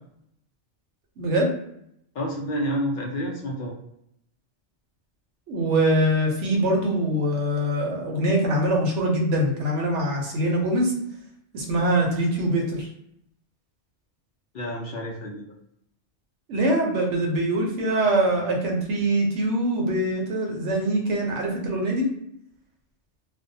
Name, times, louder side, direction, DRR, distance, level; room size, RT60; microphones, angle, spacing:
voice 1, 1.2-1.5 5.5-10.9 11.5-12.9 16.5-22.1, right 1 dB, 90° right, 0 dB, 1.0 m, -23 dB
voice 2, 2.1-3.8 14.5-15.6, equal, 60° left, -2 dB, 0.6 m, -29 dB
2.5 x 2.1 x 2.6 m, 0.72 s
omnidirectional pair, 1.2 m